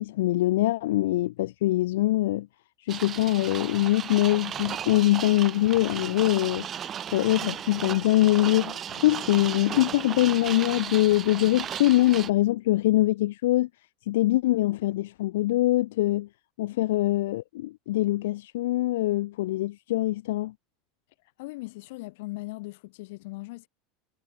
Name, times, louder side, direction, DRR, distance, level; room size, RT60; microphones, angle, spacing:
voice 1, 0.0-2.5 2.8-6.7 7.1-13.7 14.1-16.3 16.6-20.5, left 16 dB, 90° left, 0.5 m, -23 dB
sound 1, 2.9-12.3, right 9 dB, 25° right, 2.9 m, -35 dB
voice 2, 21.4-23.7, left 22 dB, 60° left, 6.1 m, -39 dB
supercardioid pair, 170°, 0 cm